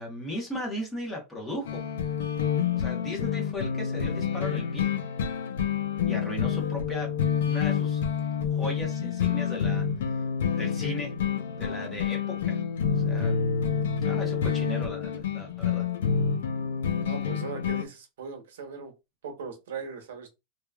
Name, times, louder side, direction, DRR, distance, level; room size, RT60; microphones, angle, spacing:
voice 1, 0.0-1.8 2.7-4.9 6.0-7.1 7.4-8.0 8.5-9.9 10.5-11.2 11.5-12.6 13.0-13.4 14.0-15.9, left 1 dB, 10° left, 0.9 m, -37 dB
sound 1, 1.7-17.8, left 7 dB, 90° left, 0.5 m, -28 dB
voice 2, 17.0-18.9 19.2-20.3, right 5 dB, 85° right, 0.9 m, -39 dB
2.8 x 2.3 x 2.2 m
supercardioid pair, 160°, 0 cm